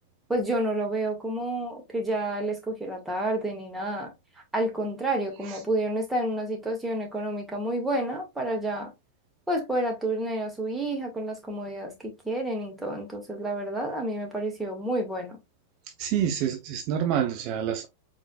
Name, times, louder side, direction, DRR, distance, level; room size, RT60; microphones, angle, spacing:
voice 1, 0.3-4.1 4.5-8.9 9.5-15.4, right 1 dB, 10° right, 1.9 m, -29 dB
voice 2, 16.0-17.9, right 9 dB, 50° right, 0.7 m, -27 dB
4.8 x 3.7 x 2.4 m
hypercardioid pair, 110°, 0 cm